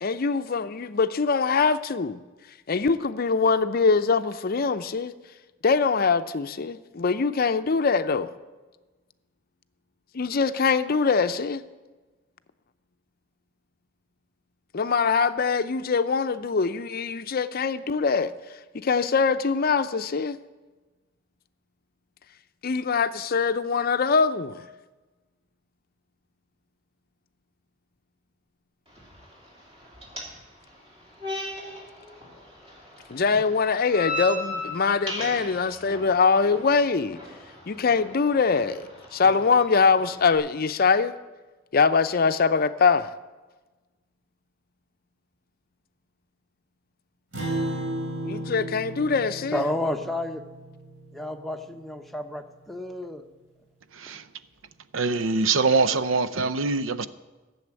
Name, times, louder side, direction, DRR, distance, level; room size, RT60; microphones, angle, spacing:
voice 1, 0.0-2.2 2.7-5.1 5.6-8.3 10.1-11.6 14.7-18.3 18.7-20.4 22.6-24.7 33.1-37.2 37.7-41.1 41.7-43.1 48.2-49.6, left 5 dB, 50° left, 0.5 m, -23 dB
sound 1, 28.9-40.3, left 1 dB, 30° right, 3.0 m, -38 dB
Acoustic guitar, 47.3-52.0, right 1 dB, 70° right, 3.9 m, -34 dB
voice 2, 49.5-50.4 51.1-53.2, left 1 dB, ahead, 0.8 m, -31 dB
voice 3, 53.9-54.2 54.9-57.1, right 4 dB, 85° right, 0.7 m, -23 dB
14.5 x 7.1 x 8.8 m
head